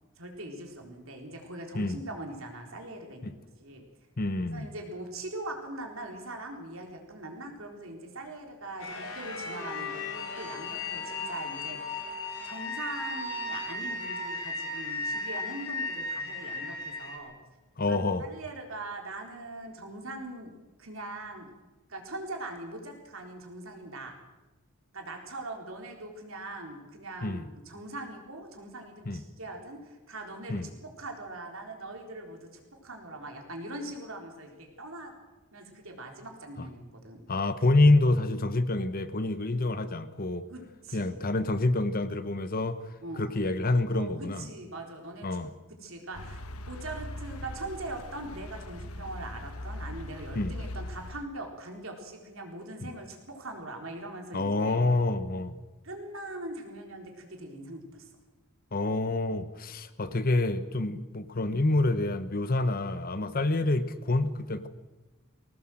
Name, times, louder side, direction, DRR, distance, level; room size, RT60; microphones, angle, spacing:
voice 1, 0.2-3.8 4.5-12.1 12.4-17.4 17.9-20.5 20.8-21.5 21.9-24.2 24.9-35.1 35.5-37.2 40.5-41.2 43.0-43.3 43.9-45.4 45.8-54.8 55.8-58.1, right 2 dB, 65° right, 2 dB, 3.9 m, -41 dB
voice 2, 4.2-4.7 17.8-18.3 27.2-27.5 29.1-29.2 30.5-30.7 36.6-36.7 37.3-40.5 40.9-44.5 45.2-45.5 50.3-50.5 52.8-52.9 54.3-55.6 58.7-64.7, left 2 dB, 45° left, 12 dB, 1.0 m, -27 dB
sound 1, 8.8-17.2, left 2 dB, 65° left, 4.3 m, -35 dB
sound 2, 46.1-51.2, left 1 dB, 85° left, 1.2 m, -40 dB
21.0 x 17.5 x 7.7 m, 1.1 s
head